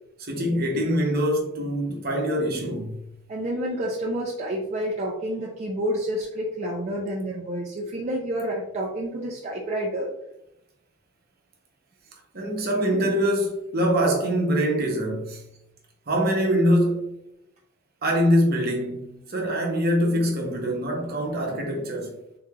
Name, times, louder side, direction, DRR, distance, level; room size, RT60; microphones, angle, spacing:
voice 1, 0.2-3.1 12.3-15.4 16.1-17.2 18.0-22.1, equal, 50° right, 0.9 m, -24 dB
voice 2, 3.3-10.1, right 1 dB, 35° right, 0.5 m, -29 dB
3.8 x 3.2 x 2.3 m
head